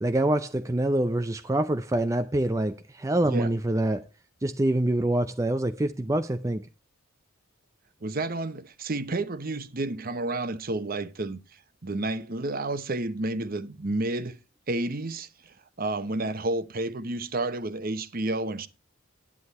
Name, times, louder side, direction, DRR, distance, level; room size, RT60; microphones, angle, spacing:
voice 1, 0.0-4.1 4.4-6.7, right 1 dB, 15° right, 0.4 m, -25 dB
voice 2, 8.0-11.4 11.8-14.4 14.7-15.3 15.8-18.7, right 2 dB, 45° right, 0.9 m, -30 dB
9.9 x 9.8 x 4.2 m
head